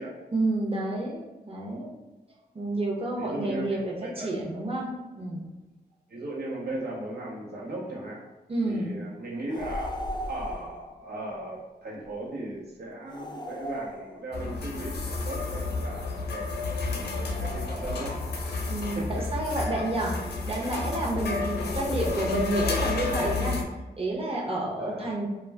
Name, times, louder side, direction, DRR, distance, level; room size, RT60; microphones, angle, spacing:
voice 1, 0.3-1.9 2.5-5.5 8.5-9.0 18.7-23.6 24.0-25.3, right 2 dB, 35° right, -3 dB, 0.8 m, -30 dB
voice 2, 3.2-4.3 6.1-8.2 8.6-10.0 10.3-18.2 18.5-19.1 21.3-22.0 24.8-25.1, right 1 dB, 75° right, -4 dB, 0.9 m, -37 dB
sound 1, 9.5-10.8 13.1-14.5 17.2-18.3, equal, 25° left, 0.3 m, -37 dB
sound 2, 14.3-23.6, left 3 dB, 85° left, 0.5 m, -31 dB
2.3 x 2.1 x 3.3 m, 1.1 s
cardioid pair, 60°, 17 cm